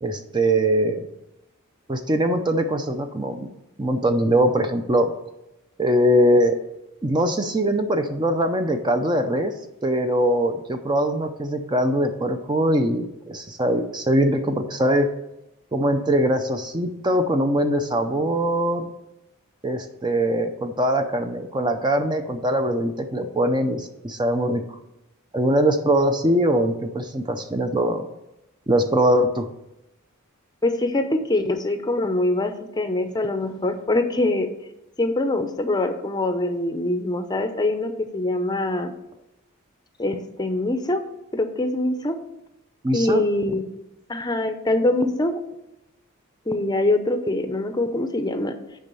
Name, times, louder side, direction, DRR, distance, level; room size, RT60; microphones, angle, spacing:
voice 1, 0.0-1.0 1.9-3.5 3.8-5.1 5.8-6.6 7.0-9.5 9.8-15.1 15.7-18.9 19.6-24.6 25.3-28.1 28.7-29.5 42.8-43.2, right 1 dB, 20° right, 6 dB, 0.6 m, -22 dB
voice 2, 30.6-34.5 35.0-38.9 40.0-41.0 41.3-42.2 42.9-43.6 44.1-45.4 46.5-48.5, left 2 dB, 20° left, 8 dB, 0.7 m, -24 dB
7.1 x 5.3 x 6.9 m, 0.89 s
head